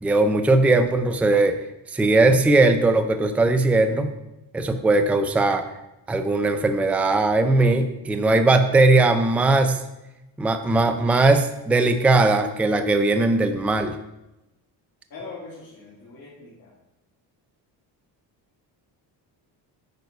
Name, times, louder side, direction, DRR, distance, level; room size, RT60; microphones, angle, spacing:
voice 1, 0.0-1.6 1.9-4.1 4.5-5.7 6.1-9.8 10.4-14.0, right 2 dB, 5° right, 7 dB, 0.4 m, -19 dB
voice 2, 15.1-16.7, left 3 dB, 50° left, -8 dB, 2.8 m, -41 dB
9.4 x 4.5 x 5.3 m, 0.95 s
cardioid pair, 140°, 44 cm